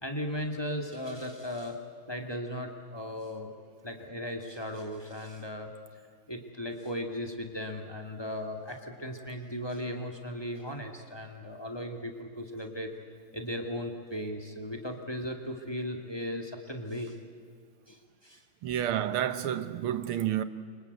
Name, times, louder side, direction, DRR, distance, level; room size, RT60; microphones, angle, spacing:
voice 1, 0.0-1.8 2.1-3.5 3.8-5.7 6.3-12.9 13.3-17.2 17.9-18.4, equal, 10° left, 2.2 m, -37 dB
voice 2, 18.6-20.4, right 11 dB, 75° right, 1.7 m, -30 dB
29.5 x 24.5 x 8.2 m
omnidirectional pair, 2.4 m